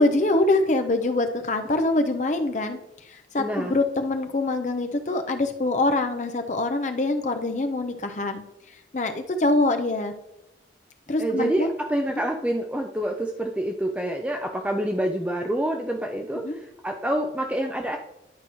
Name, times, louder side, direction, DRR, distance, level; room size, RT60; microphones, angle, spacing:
voice 1, 0.0-2.8 3.3-8.4 8.9-10.1 11.1-11.7 16.4-16.6, left 2 dB, 40° left, 6 dB, 0.6 m, -24 dB
voice 2, 3.4-3.8 11.2-18.0, right 1 dB, 5° right, 2 dB, 0.4 m, -27 dB
11.0 x 4.7 x 3.1 m, 0.87 s
head